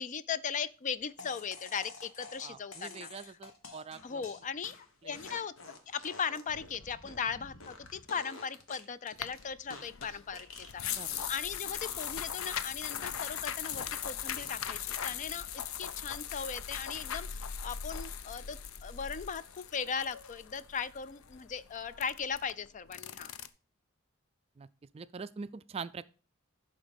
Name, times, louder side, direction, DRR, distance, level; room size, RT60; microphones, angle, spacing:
voice 1, 0.0-3.1 4.0-5.5 5.9-23.3, left 6 dB, 40° left, 0.4 m, -38 dB
sound 1, 1.2-11.4 11.7-12.1 12.4-15.5 15.8-16.3, left 3 dB, 70° left, 1.5 m, -50 dB
voice 2, 2.4-4.2 5.0-5.2 7.0-7.1 10.8-11.2 24.6-24.7 24.9-26.1, right 5 dB, 30° right, 0.3 m, -44 dB
sound 2, 9.2-23.5, left 9 dB, 85° left, 0.6 m, -40 dB
11.5 x 3.9 x 5.2 m
head